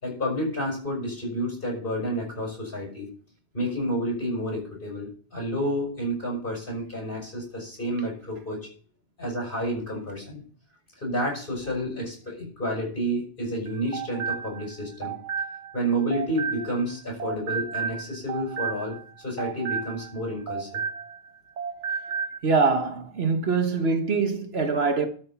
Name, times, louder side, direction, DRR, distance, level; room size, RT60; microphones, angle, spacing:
voice 1, 0.0-3.1 3.5-8.7 9.2-10.4 11.0-15.2 15.7-20.8, equal, 50° left, 6.6 m, -30 dB
sound 1, 13.7-16.9 17.2-21.3 21.6-22.4, right 6 dB, 90° right, 1.3 m, -33 dB
voice 2, 22.4-25.1, right 4 dB, 65° right, 1.4 m, -23 dB
12.5 x 6.4 x 5.8 m
omnidirectional pair, 1.2 m